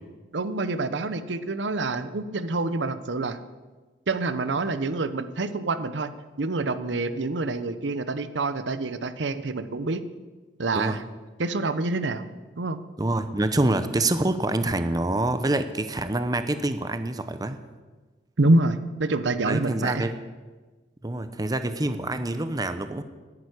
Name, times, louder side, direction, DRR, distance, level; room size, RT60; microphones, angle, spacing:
voice 1, 0.3-3.4 4.1-6.1 6.4-10.0 10.6-11.0 11.4-12.3 12.6-12.8 18.4-20.1, right 2 dB, 85° right, 12 dB, 0.8 m, -26 dB
voice 2, 13.0-17.6 19.5-20.1 21.0-23.0, right 2 dB, 20° right, 10 dB, 0.7 m, -26 dB
11.0 x 9.1 x 9.8 m, 1.3 s
head